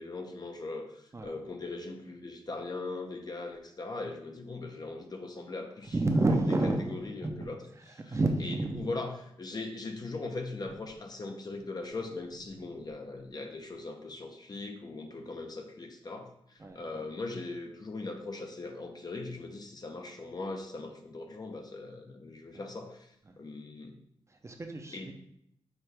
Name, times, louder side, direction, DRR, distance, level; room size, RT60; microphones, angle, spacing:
voice 1, 0.0-5.9 6.3-6.4 6.9-7.6 8.1-8.2 8.4-24.0 24.9-25.1, left 3 dB, 40° left, 4 dB, 0.6 m, -40 dB
voice 2, 5.9-7.5 8.1-8.9 16.6-17.1 22.5-22.7 23.3-23.4 24.3-25.1, right 2 dB, 25° right, 3 dB, 0.6 m, -30 dB
6.0 x 2.7 x 3.3 m, 0.73 s
cardioid pair, 75°, 11 cm